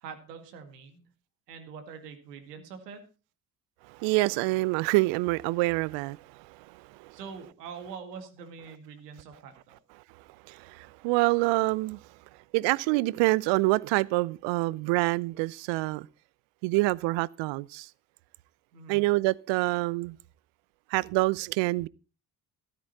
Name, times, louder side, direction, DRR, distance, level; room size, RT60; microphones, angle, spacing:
voice 1, 0.0-1.0 1.5-3.0 7.1-9.8 18.7-19.0, right 6 dB, 85° right, 2.1 m, -44 dB
voice 2, 3.9-7.2 10.5-12.0 12.5-16.1 16.6-17.9 18.9-20.2 20.9-21.9, right 22 dB, 70° right, 0.6 m, -26 dB
13.5 x 12.0 x 4.1 m
hypercardioid pair, 50°, 46 cm